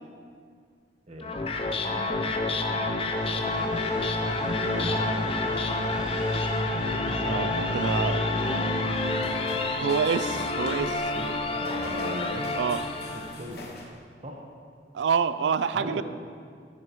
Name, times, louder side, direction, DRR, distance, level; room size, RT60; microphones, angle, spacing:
voice 1, 1.1-1.7 3.5-3.7 4.2-5.5 7.0-9.5 11.1-13.0 13.3-13.8 14.2-14.5 15.7-16.0, equal, 40° right, 1 dB, 1.1 m, -40 dB
sound 1, 1.2-13.4, left 2 dB, 35° left, 0.6 m, -28 dB
sound 2, 3.1-9.2, equal, 5° right, 1.0 m, -46 dB
voice 2, 7.2-8.2 9.8-11.1 12.6-12.8 14.9-16.0, right 6 dB, 85° right, 14 dB, 0.4 m, -27 dB
sound 3, 8.7-14.0, left 2 dB, 65° left, 1.0 m, -43 dB
12.5 x 8.2 x 3.1 m, 2.1 s
head